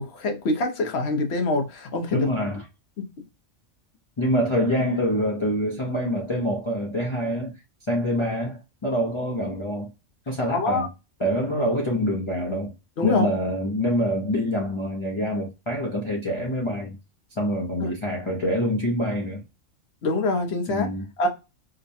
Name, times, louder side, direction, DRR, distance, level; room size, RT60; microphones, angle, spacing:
voice 1, 0.0-2.3 3.0-3.1 10.5-10.9 13.0-13.3 17.8-17.9 20.0-20.9 21.2-21.3, left 2 dB, 60° left, 1.1 m, -25 dB
voice 2, 2.1-2.7 4.2-7.5 7.9-9.9 10.3-10.9 11.2-12.7 13.0-17.0 17.3-19.4 20.7-21.1, equal, 30° left, 0.6 m, -26 dB
4.8 x 2.2 x 2.6 m
omnidirectional pair, 1.3 m